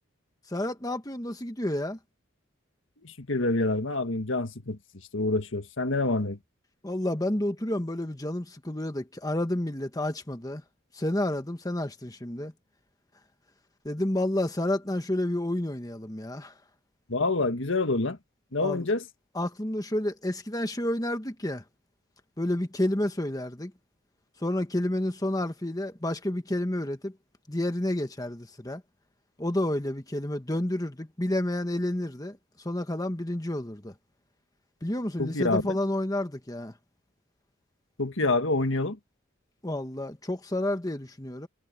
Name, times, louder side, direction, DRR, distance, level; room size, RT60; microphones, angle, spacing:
voice 1, 0.5-2.0 6.8-10.6 10.9-12.5 13.8-16.5 18.6-18.8 19.3-21.6 22.4-23.7 24.4-27.1 27.5-28.8 29.4-32.4 32.6-33.9 34.8-36.7 39.6-41.5, left 1 dB, 20° left, 1.3 m, -30 dB
voice 2, 3.0-4.8 5.1-6.4 17.1-18.2 18.5-19.0 35.2-35.8 38.0-39.0, left 2 dB, 70° left, 1.7 m, -27 dB
head